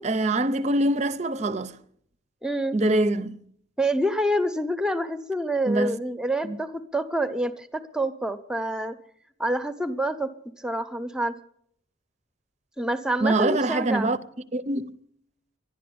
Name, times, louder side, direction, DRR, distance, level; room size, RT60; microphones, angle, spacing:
voice 1, 0.0-1.8 2.7-3.4 5.7-6.0 6.4-6.6 13.2-14.2 14.5-14.9, right 2 dB, 35° right, 0.6 m, -24 dB
voice 2, 2.4-2.8 3.8-9.0 9.4-10.3 10.6-11.3 12.8-14.1, right 1 dB, 5° right, 0.7 m, -27 dB
12.5 x 11.0 x 8.6 m
head